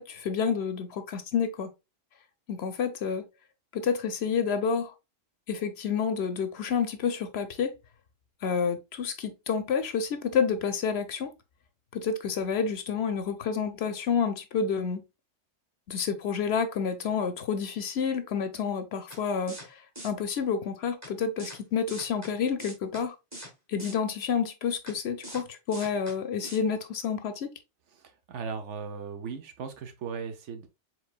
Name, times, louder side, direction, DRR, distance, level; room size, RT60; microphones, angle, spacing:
voice 1, 0.0-1.7 2.5-3.3 3.7-4.9 5.5-7.7 8.4-11.3 11.9-15.0 15.9-23.2 23.7-27.5, left 6 dB, 65° left, 0.8 m, -29 dB
sound 1, 19.1-19.2 19.5-19.7 20.0-20.1 21.0-21.1 21.4-21.6 21.9-22.3 22.6-23.0 23.3-23.5 23.8-23.9 24.9-25.0 25.2-25.4 25.7-26.1 26.4-26.6, right 1 dB, 15° right, 1.2 m, -42 dB
voice 2, 28.0-30.7, right 5 dB, 70° right, 1.1 m, -37 dB
4.6 x 3.9 x 2.4 m
omnidirectional pair, 1.3 m